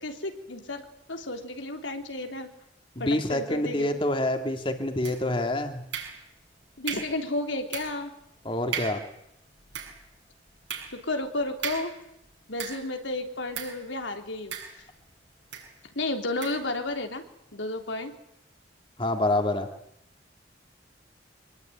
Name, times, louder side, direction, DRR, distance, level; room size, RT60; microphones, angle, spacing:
voice 1, 0.0-2.5 3.0-3.9 6.8-8.1 10.9-11.9 12.5-14.6 16.0-17.2 17.5-18.2, left 2 dB, 85° left, 5 dB, 3.6 m, -32 dB
voice 2, 3.0-5.8 8.4-9.0 19.0-19.7, left 1 dB, 30° left, 6 dB, 2.6 m, -27 dB
sound 1, 5.0-5.4 5.9-6.5 6.9-7.2 7.7-8.1 8.4-8.5 8.7-9.1 9.5-13.0 13.5-13.9 14.5-15.1 15.5-15.7 16.4-16.7, right 7 dB, 75° right, 7.5 m, -37 dB
25.5 x 21.0 x 9.5 m, 0.76 s
head